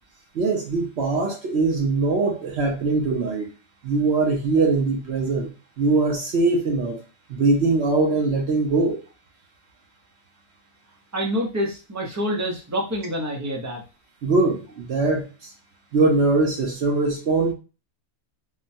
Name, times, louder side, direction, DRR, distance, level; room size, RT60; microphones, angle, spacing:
voice 1, 0.3-3.5 3.8-5.5 5.8-7.0 7.3-9.0 14.2-15.5 15.9-17.5, right 3 dB, 60° right, 0 dB, 0.8 m, -22 dB
voice 2, 11.1-13.8, equal, 25° right, -1 dB, 0.4 m, -27 dB
3.7 x 2.1 x 2.6 m, 0.31 s
omnidirectional pair, 1.5 m